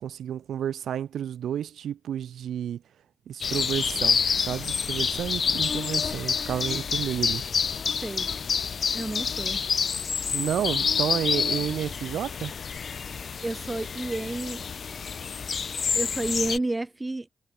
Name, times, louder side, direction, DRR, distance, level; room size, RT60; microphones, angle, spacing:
voice 1, 0.0-2.8 3.3-4.2 4.5-7.4 10.3-12.5, right 10 dB, 80° right, 0.4 m, -31 dB
sound 1, 3.4-16.6, left 6 dB, 55° left, 1.3 m, -28 dB
voice 2, 8.9-9.6 13.4-14.6 15.9-17.3, right 2 dB, 20° right, 3.8 m, -30 dB
cardioid pair, 70°, 0 cm